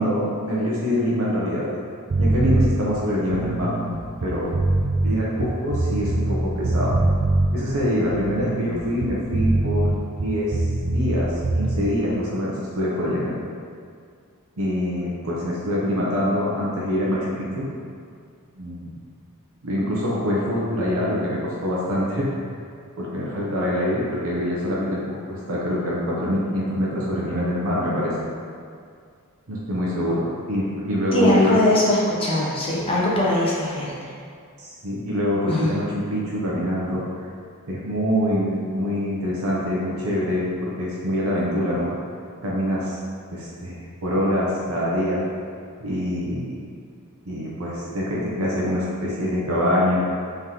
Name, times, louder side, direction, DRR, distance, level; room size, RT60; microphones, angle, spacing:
voice 1, 0.0-1.6 2.2-3.9 4.2-4.5 5.0-7.0 7.5-9.9 10.2-10.6 10.8-13.3 14.6-17.7 18.6-18.9 19.6-22.3 23.0-28.3 29.5-31.6 34.6-37.0 37.7-41.9 42.4-43.0 43.3-45.3 45.8-46.6 47.2-50.0, equal, 65° right, -6 dB, 0.8 m, -25 dB
sound 1, 2.1-2.7 3.2-6.4 6.6-7.5 8.0-11.2 11.4-11.7, right 2 dB, 45° right, 0.4 m, -23 dB
voice 2, 31.1-33.9 35.5-35.7, left 1 dB, 25° left, -6 dB, 0.6 m, -20 dB
3.8 x 3.3 x 2.9 m, 2.2 s
head